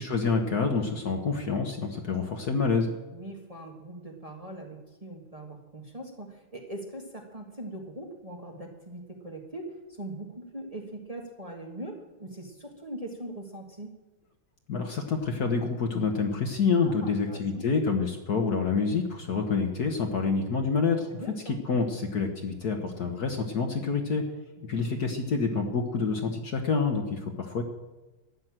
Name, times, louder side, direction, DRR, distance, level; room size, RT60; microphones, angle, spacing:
voice 1, 0.0-2.9 14.7-21.1 21.5-24.2 24.6-27.6, left 4 dB, 50° left, 4 dB, 1.5 m, -27 dB
voice 2, 3.1-13.9 16.8-17.7 21.1-21.6 24.6-24.9, right 1 dB, 20° right, 1 dB, 1.5 m, -41 dB
13.5 x 9.6 x 7.5 m, 1.1 s
omnidirectional pair, 2.4 m